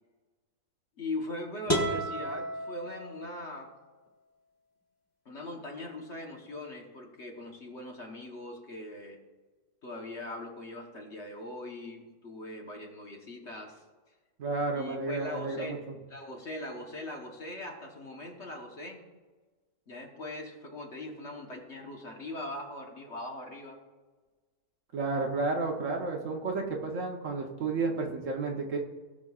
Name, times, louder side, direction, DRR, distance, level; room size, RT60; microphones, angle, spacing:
voice 1, 1.0-3.7 5.2-9.2 9.8-13.8 14.7-15.8 16.1-19.0 19.9-23.8, left 2 dB, 45° left, 1 dB, 1.3 m, -41 dB
sound 1, 1.7-3.6, equal, 10° left, 1.3 m, -32 dB
voice 2, 14.4-15.9 24.9-28.8, right 3 dB, 55° right, 1 dB, 1.1 m, -32 dB
17.5 x 6.1 x 2.4 m, 1.3 s
omnidirectional pair, 1.7 m